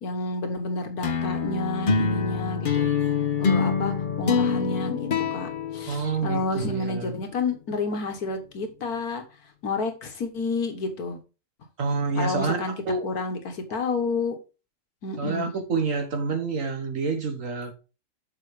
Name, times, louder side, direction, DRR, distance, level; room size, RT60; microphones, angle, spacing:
voice 1, 0.0-2.9 3.4-9.2 9.6-11.2 12.2-12.7 13.0-14.4 15.0-15.5, left 3 dB, 65° left, 1.9 m, -30 dB
sound 1, 1.0-6.6, left 6 dB, 45° left, 0.7 m, -25 dB
voice 2, 5.9-7.1 11.8-13.1 15.2-17.7, right 4 dB, 55° right, 1.6 m, -28 dB
7.3 x 5.3 x 4.9 m
omnidirectional pair, 1.8 m